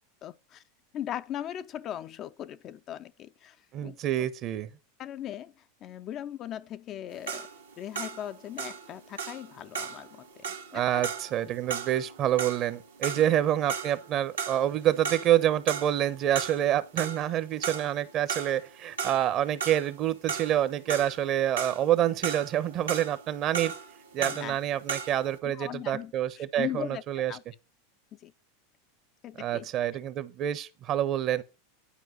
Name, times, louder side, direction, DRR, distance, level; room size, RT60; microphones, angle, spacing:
voice 1, 0.2-0.6 0.9-3.6 3.8-4.3 5.0-7.5 7.8-10.3 10.7-11.1 24.2-24.6 25.4-27.0 27.3-27.4 28.1-28.3 29.2-29.7, left 11 dB, 40° left, 0.5 m, -39 dB
voice 2, 3.7-4.7 10.7-23.7 24.1-27.3 29.4-31.4, right 11 dB, 45° right, 0.9 m, -27 dB
sound 1, 7.1-14.1 14.4-15.4 15.7-16.7 17.0-25.3, right 5 dB, 90° right, 1.8 m, -36 dB
10.5 x 4.7 x 6.2 m
hypercardioid pair, 95°, 0 cm